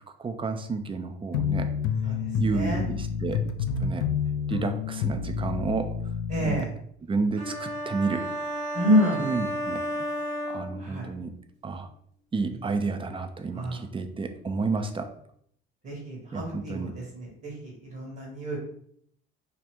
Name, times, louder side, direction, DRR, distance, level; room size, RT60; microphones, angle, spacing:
voice 1, 0.2-1.7 2.4-3.5 3.8-4.1 4.5-5.9 6.4-6.6 7.1-8.3 9.2-10.0 10.5-11.3 11.6-11.9 12.3-15.1 16.3-16.9, right 4 dB, 15° right, 7 dB, 0.4 m, -30 dB
sound 1, 1.3-6.7, left 7 dB, 65° left, 0.4 m, -29 dB
voice 2, 2.0-2.8 6.3-6.7 8.7-9.3 10.8-11.1 13.5-13.8 15.8-18.6, equal, 40° right, -1 dB, 1.2 m, -28 dB
sound 2, 7.4-11.3, equal, 80° right, 0.8 m, -33 dB
2.8 x 2.4 x 3.4 m, 0.67 s
hypercardioid pair, 60°, 30 cm